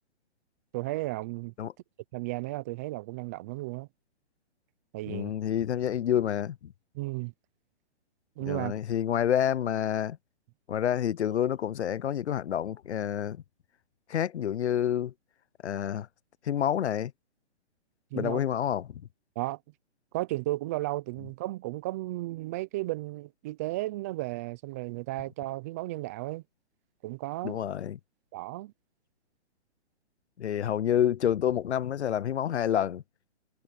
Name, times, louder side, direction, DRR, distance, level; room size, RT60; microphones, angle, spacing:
voice 1, 0.7-1.5 2.1-3.9 4.9-5.3 6.9-7.3 8.4-8.7 18.1-18.4 19.4-19.6 20.1-26.4 27.0-27.6 28.3-28.7, right 19 dB, 15° right, 0.4 m, -34 dB
voice 2, 5.1-6.7 8.4-10.2 10.7-13.4 14.1-15.1 15.6-16.1 16.4-17.1 18.1-19.0 27.4-28.0 30.4-33.0, left 10 dB, 80° left, 0.7 m, -28 dB
hypercardioid pair, 145°, 33 cm